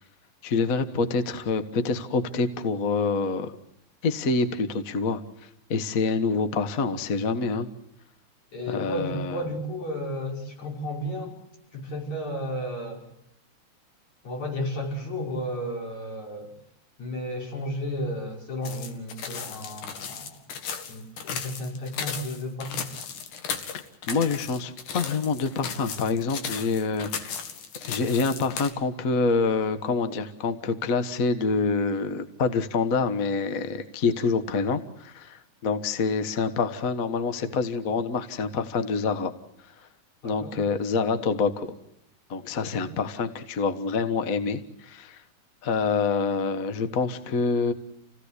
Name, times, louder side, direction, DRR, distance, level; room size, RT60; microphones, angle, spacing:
voice 1, 0.4-3.5 4.0-5.2 5.7-7.7 8.7-9.4 23.7-27.3 27.8-39.3 40.2-41.7 42.3-45.2 45.6-47.7, left 4 dB, 45° left, 9 dB, 1.1 m, -26 dB
voice 2, 8.5-11.3 11.7-13.0 14.2-16.5 17.0-20.4 20.9-22.9 40.2-40.6 42.7-42.9, equal, 65° left, -1 dB, 7.0 m, -33 dB
sound 1, 18.6-28.7, left 6 dB, 80° left, 3.3 m, -36 dB
29.0 x 17.0 x 8.2 m, 0.79 s
omnidirectional pair, 3.5 m